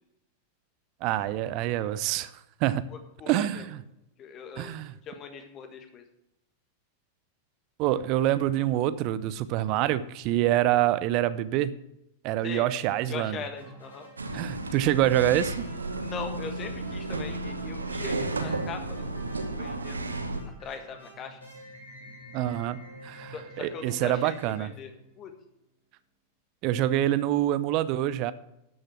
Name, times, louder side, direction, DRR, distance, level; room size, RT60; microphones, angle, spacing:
voice 1, 1.0-2.3 2.6-2.8 3.3-3.8 4.6-4.9 7.8-11.8 12.2-13.4 14.3-15.6 22.3-24.7 26.6-28.3, right 13 dB, 40° right, 17 dB, 0.6 m, -26 dB
voice 2, 2.9-3.7 4.2-4.8 5.0-6.0 12.4-12.7 13.1-14.1 16.0-20.1 20.6-21.4 23.3-24.9 25.2-25.3, left 5 dB, 30° left, 6 dB, 1.6 m, -40 dB
sound 1, 13.5-25.4, equal, 80° left, 3.4 m, -49 dB
sound 2, 14.2-20.4, right 2 dB, 75° right, 1.0 m, -33 dB
12.0 x 6.5 x 6.1 m, 0.85 s
figure-of-eight pair, 90°, 0 cm